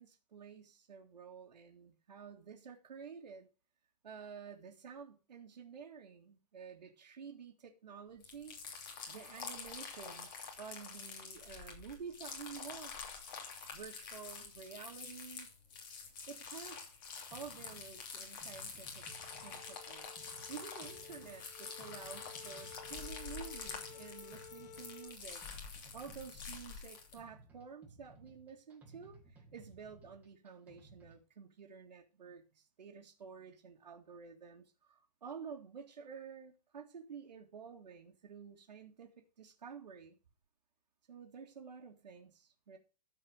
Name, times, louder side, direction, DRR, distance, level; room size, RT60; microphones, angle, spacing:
voice 1, 0.0-3.5 4.0-8.6 9.1-13.2 13.7-15.5 16.3-16.9 17.3-19.1 19.4-20.1 20.5-25.4 25.9-40.2 41.1-42.8, right 6 dB, 90° right, 2.2 m, -51 dB
sound 1, 8.2-27.2, left 5 dB, 35° left, 3.0 m, -47 dB
sound 2, 17.3-31.2, right 3 dB, 5° right, 1.9 m, -60 dB
sound 3, 19.1-25.2, left 7 dB, 75° left, 0.9 m, -55 dB
14.0 x 4.9 x 6.4 m
hypercardioid pair, 165°, 21 cm